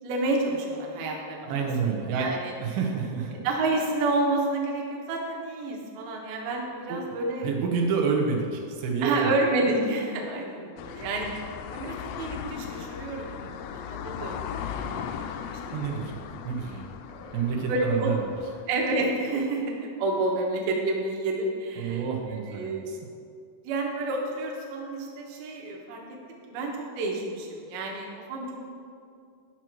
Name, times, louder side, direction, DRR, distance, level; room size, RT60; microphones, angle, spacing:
voice 1, 0.0-1.7 2.1-2.5 3.4-7.5 9.0-11.3 11.7-14.5 14.8-15.3 15.9-16.0 16.7-16.8 17.1-18.1 18.7-22.0 22.3-22.9 23.6-26.0 26.3-28.6, right 2 dB, 70° right, -1 dB, 2.8 m, -29 dB
voice 2, 1.5-2.3 2.6-3.4 6.9-7.1 7.4-9.3 15.7-16.8 17.3-18.2 21.8-23.0, right 5 dB, 90° right, 0 dB, 3.2 m, -28 dB
sound 1, 10.8-18.6, left 8 dB, 85° left, 2.7 m, -38 dB
11.0 x 6.1 x 4.5 m, 2.3 s
omnidirectional pair, 4.9 m